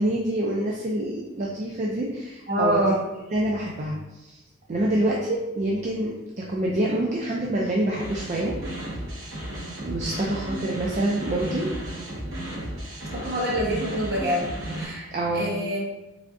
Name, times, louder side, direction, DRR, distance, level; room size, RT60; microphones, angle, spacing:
voice 1, 0.0-2.9 3.3-4.4 4.7-8.6 9.8-11.7 15.1-15.5, right 1 dB, 35° right, -2 dB, 0.4 m, -26 dB
voice 2, 2.5-3.0 13.1-15.1 15.3-15.8, equal, 55° right, -5 dB, 1.2 m, -25 dB
sound 1, 7.9-14.8, right 1 dB, 70° right, 1.1 m, -34 dB
3.6 x 3.4 x 2.5 m, 1.1 s
head